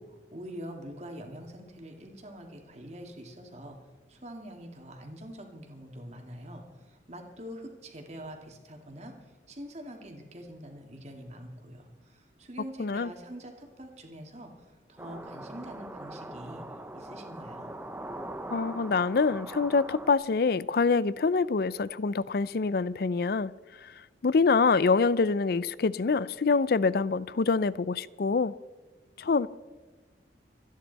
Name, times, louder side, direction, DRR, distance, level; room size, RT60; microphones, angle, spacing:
voice 1, 0.0-3.8 4.1-9.1 9.5-16.6 16.9-17.7, equal, 40° right, 2.3 m, -44 dB
voice 2, 12.8-13.1 18.5-23.5 23.8-23.9 24.2-28.5 29.2-29.5, left 4 dB, 60° left, 0.4 m, -25 dB
sound 1, 15.0-20.1, right 1 dB, 10° right, 0.7 m, -41 dB
27.0 x 10.5 x 4.1 m
head